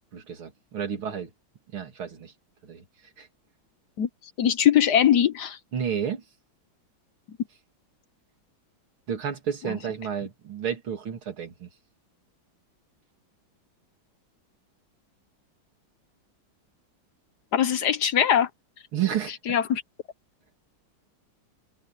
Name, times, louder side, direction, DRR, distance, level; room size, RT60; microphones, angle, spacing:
voice 1, 0.1-1.3 1.7-2.3 2.6-2.8 3.2-3.3 5.7-6.2 9.1-11.7 18.9-19.3, right 8 dB, 90° right, 3.5 m, -31 dB
voice 2, 4.4-5.6 9.6-9.8 17.5-18.5 19.5-19.8, left 9 dB, 60° left, 1.4 m, -21 dB
omnidirectional pair, 2.2 m